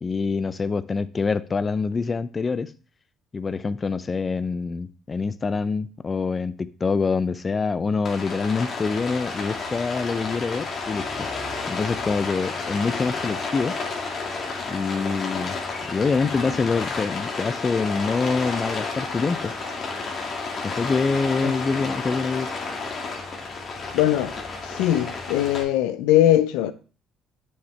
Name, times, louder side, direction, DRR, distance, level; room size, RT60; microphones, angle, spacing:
voice 1, 0.0-2.7 3.3-11.3 11.7-13.8 14.7-15.6 15.9-19.5 20.6-22.5, left 4 dB, 30° left, 0.4 m, -25 dB
Rain, 8.0-25.6, left 4 dB, 50° left, 2.1 m, -31 dB
voice 2, 23.9-24.3 24.6-26.7, left 12 dB, 80° left, 0.5 m, -20 dB
7.1 x 6.6 x 3.2 m
supercardioid pair, 75°, 0 cm